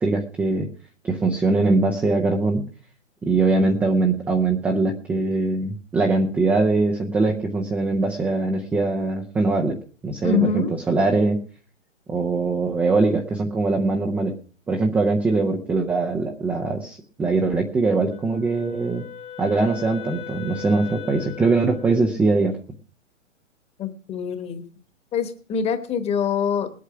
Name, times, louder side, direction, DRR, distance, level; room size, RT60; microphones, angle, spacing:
voice 1, 0.0-0.7 1.0-2.6 3.2-9.8 10.0-11.4 12.1-14.3 14.7-19.0 19.4-22.6, right 3 dB, 5° right, 1 dB, 0.5 m, -22 dB
voice 2, 10.2-10.7 23.8-24.6 25.1-26.7, left 6 dB, 15° left, 10 dB, 1.2 m, -24 dB
Wind instrument woodwind instrument, 18.1-22.2, left 9 dB, 60° left, 2.2 m, -39 dB
19.0 x 8.4 x 5.8 m, 0.42 s
figure-of-eight pair, 125°, 37 cm